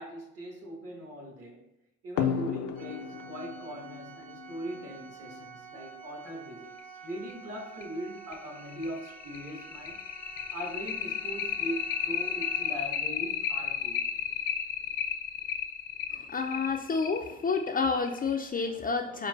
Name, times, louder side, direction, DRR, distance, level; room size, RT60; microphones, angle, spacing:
voice 1, 0.0-1.7 2.0-10.0 10.5-14.0, right 1 dB, 50° right, 0 dB, 1.5 m, -40 dB
sound 1, 2.2-5.3 6.8-6.9 7.3-7.4 7.8-7.9 8.3-18.4, left 8 dB, 85° left, 0.5 m, -33 dB
Organ, 2.7-13.3, right 6 dB, 30° right, 0.7 m, -49 dB
voice 2, 16.1-19.3, left 4 dB, 30° left, 4 dB, 0.4 m, -29 dB
4.3 x 2.1 x 3.9 m, 0.86 s
cardioid pair, 90°, 30 cm